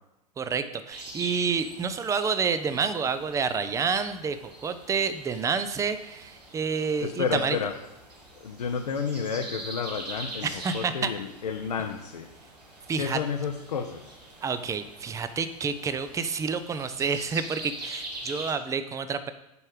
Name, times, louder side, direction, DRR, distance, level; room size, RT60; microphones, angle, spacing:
voice 1, 0.4-7.6 10.4-11.1 12.9-13.2 14.4-19.3, right 5 dB, 15° right, 12 dB, 0.6 m, -29 dB
sound 1, 0.9-18.5, right 2 dB, 75° right, 2.0 m, -43 dB
voice 2, 7.0-7.7 8.4-12.3 13.0-14.2, left 6 dB, 70° left, 3 dB, 0.8 m, -31 dB
6.9 x 5.5 x 6.6 m, 0.88 s
figure-of-eight pair, 95°, 21 cm